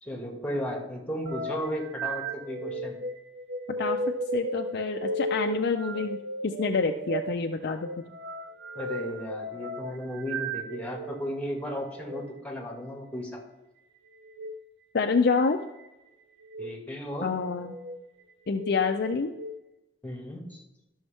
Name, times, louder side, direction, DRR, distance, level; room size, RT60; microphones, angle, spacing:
voice 1, 0.0-3.0 8.8-13.4 16.6-17.3 20.0-20.6, equal, 10° left, 0 dB, 1.8 m, -35 dB
sound 1, 1.3-11.2 12.0-12.2 14.2-14.6 15.4-15.9 16.4-16.7 17.5-18.0 18.5-19.5, right 1 dB, 65° right, 0.6 m, -35 dB
voice 2, 4.3-6.2 6.4-7.9 14.9-15.6 17.2-17.7 18.5-19.3, left 4 dB, 60° left, 4 dB, 0.5 m, -27 dB
12.0 x 6.3 x 3.5 m, 0.95 s
head